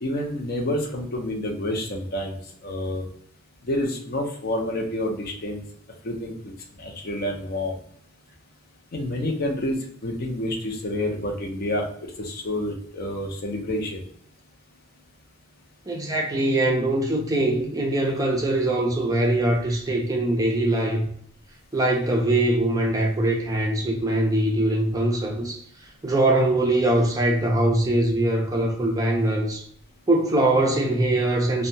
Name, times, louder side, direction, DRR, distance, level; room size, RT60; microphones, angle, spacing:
voice 1, 0.0-3.0 3.7-5.6 6.0-6.5 6.8-7.7 8.9-9.8 10.0-11.9 12.2-14.0, left 1 dB, 50° left, 0.6 m, -28 dB
voice 2, 15.9-21.1 21.7-25.6 26.0-29.6 30.1-31.7, right 1 dB, 20° right, 0.5 m, -22 dB
2.7 x 2.1 x 2.7 m
head